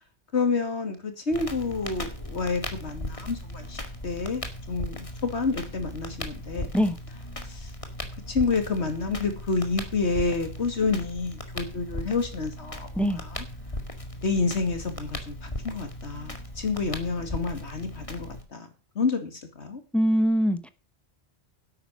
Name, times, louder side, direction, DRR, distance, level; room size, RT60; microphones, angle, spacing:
voice 1, 0.3-4.4 4.7-6.7 7.4-7.7 8.3-13.4 14.2-18.7 18.9-19.8, left 4 dB, 85° left, 2.7 m, -29 dB
Crackle, 1.3-18.4, left 1 dB, 30° left, 2.0 m, -38 dB
voice 2, 19.9-20.7, equal, ahead, 0.9 m, -22 dB
11.0 x 8.7 x 6.3 m
omnidirectional pair, 1.1 m